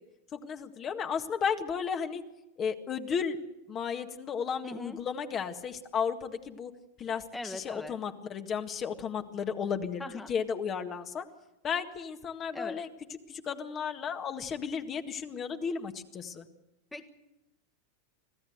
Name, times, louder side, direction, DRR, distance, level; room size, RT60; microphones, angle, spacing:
voice 1, 0.3-2.2 2.6-3.4 3.7-6.7 7.0-10.0 10.3-11.2 11.6-12.9 13.3-16.5, left 6 dB, 35° left, 6 dB, 1.8 m, -34 dB
voice 2, 4.6-5.0 7.3-8.0 10.0-10.3 12.5-12.8 16.9-17.1, left 1 dB, 10° left, 8 dB, 1.6 m, -40 dB
25.5 x 15.5 x 8.1 m, 0.95 s
hypercardioid pair, 95°, 0 cm